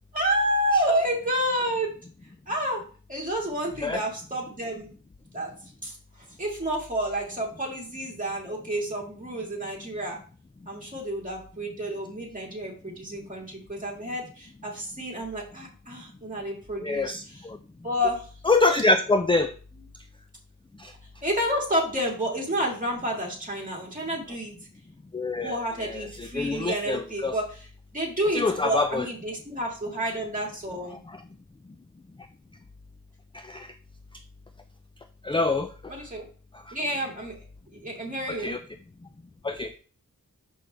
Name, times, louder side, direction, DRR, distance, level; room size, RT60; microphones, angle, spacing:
voice 1, 0.1-1.9 2.5-2.8 3.1-4.9 5.3-5.5 5.8-5.9 6.4-10.2 10.7-17.5 17.8-18.3 21.2-24.5 25.4-27.7 27.9-31.0 35.9-36.3 36.7-37.3 37.8-38.5, equal, 25° right, -2 dB, 2.2 m, -29 dB
voice 2, 16.8-17.6 18.5-19.5 20.8-20.9 25.1-25.5 25.8-27.3 28.3-29.1 33.5-33.7 35.2-35.9 38.3-38.6 39.4-39.7, left 3 dB, 15° left, 8 dB, 0.4 m, -25 dB
6.2 x 5.4 x 3.4 m, 0.39 s
wide cardioid pair, 110°, 33 cm